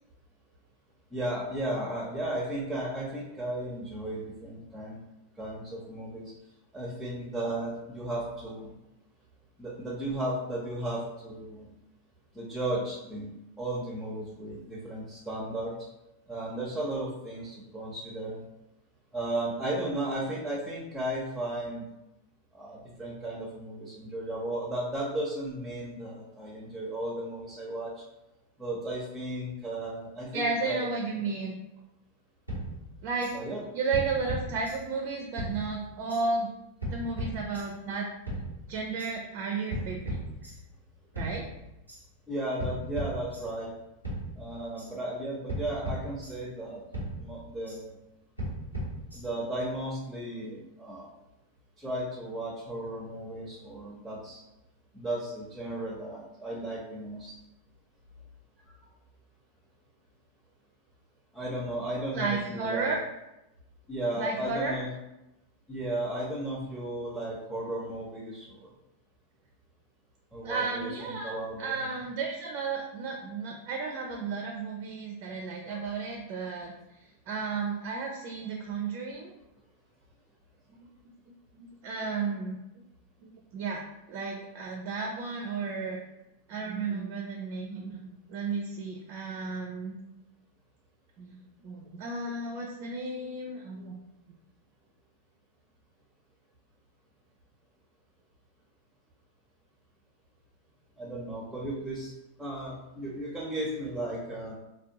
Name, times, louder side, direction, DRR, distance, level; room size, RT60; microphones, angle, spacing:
voice 1, 1.1-5.0 5.4-6.3 6.7-8.7 9.6-11.7 12.3-13.3 13.6-15.7 16.3-18.4 19.1-21.9 22.5-27.9 28.6-30.9 33.3-33.6 42.3-43.7 44.4-46.8 47.2-48.0 49.1-51.1 51.8-54.4 54.9-57.3 61.3-63.0 63.9-64.9 65.7-68.6 70.3-71.9 75.7-75.9 101.0-102.1 102.4-104.6, right 1 dB, 5° right, -5 dB, 0.7 m, -35 dB
voice 2, 30.3-31.6 33.0-33.3 33.7-36.5 36.9-38.1 38.7-40.2 41.1-41.5 62.1-63.0 64.2-64.8 70.4-76.7 77.3-79.3 80.8-80.9 81.2-81.3 81.6-82.6 83.2-83.8 84.1-86.0 86.5-89.9 91.2-94.0, right 4 dB, 40° right, 1 dB, 0.4 m, -33 dB
sound 1, 32.5-33.3 33.9-35.1 35.4-36.2 36.8-37.9 38.3-39.1 39.7-40.9 41.2-42.0 42.6-43.8 44.0-44.9 45.5-46.7 46.9-47.8 48.4-49.5, right 1 dB, 90° left, 1.1 m, -37 dB
3.4 x 2.2 x 2.8 m, 0.92 s
figure-of-eight pair, 90°, 0 cm